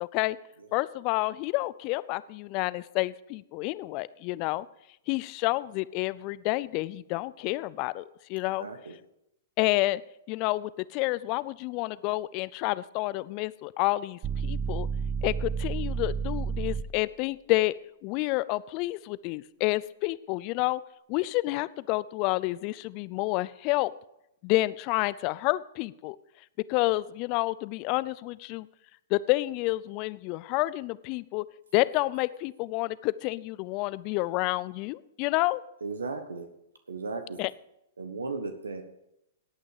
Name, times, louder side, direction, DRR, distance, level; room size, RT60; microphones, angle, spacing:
voice 1, 0.0-0.4 0.7-4.7 5.1-8.7 9.6-10.0 10.3-14.9 15.2-17.7 18.0-20.8 21.1-23.9 24.4-26.2 26.7-28.7 29.1-31.4 31.7-35.6 37.4-37.5, left 20 dB, 40° left, 19 dB, 0.5 m, -29 dB
voice 2, 8.6-9.0 35.8-36.5 36.9-37.4 38.0-38.8, right 4 dB, 85° right, 8 dB, 1.3 m, -35 dB
sound 1, 14.2-17.0, right 6 dB, 20° right, 0.9 m, -31 dB
18.0 x 8.8 x 5.0 m, 0.83 s
hypercardioid pair, 115°, 0 cm